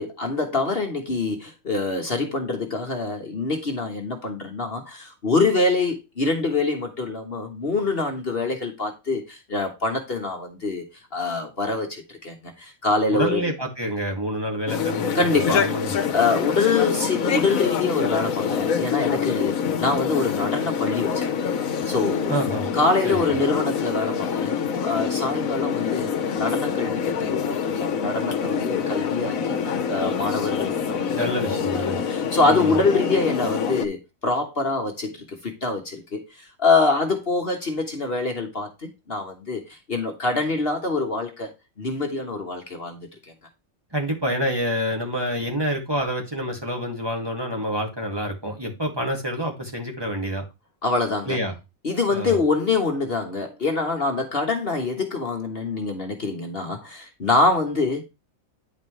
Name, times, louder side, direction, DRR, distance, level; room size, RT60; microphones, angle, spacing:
voice 1, 0.0-10.9 11.1-13.6 15.1-15.7 16.1-21.3 21.9-22.4 22.7-31.2 31.5-31.7 32.1-43.3 50.8-51.4 51.8-58.0, left 3 dB, 45° left, 1.5 m, -25 dB
voice 2, 13.1-15.2 15.5-15.9 22.3-22.7 23.0-23.4 31.2-32.0 32.5-32.8 43.9-50.4 51.3-51.5 52.1-52.4, equal, 15° right, 2.2 m, -27 dB
sound 1, 14.7-33.9, left 7 dB, 80° left, 1.4 m, -26 dB
10.0 x 5.3 x 3.2 m
omnidirectional pair, 1.4 m